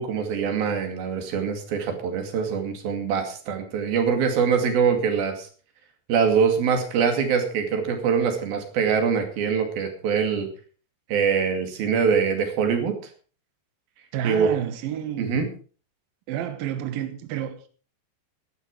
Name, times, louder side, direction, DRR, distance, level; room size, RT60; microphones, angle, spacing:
voice 1, 0.0-5.5 6.1-10.5 11.1-12.9 14.2-14.5 15.2-15.5, right 6 dB, 55° right, 3.7 m, -23 dB
voice 2, 14.1-15.4 16.3-17.7, right 10 dB, 80° right, 2.1 m, -30 dB
13.5 x 12.0 x 4.8 m
omnidirectional pair, 5.8 m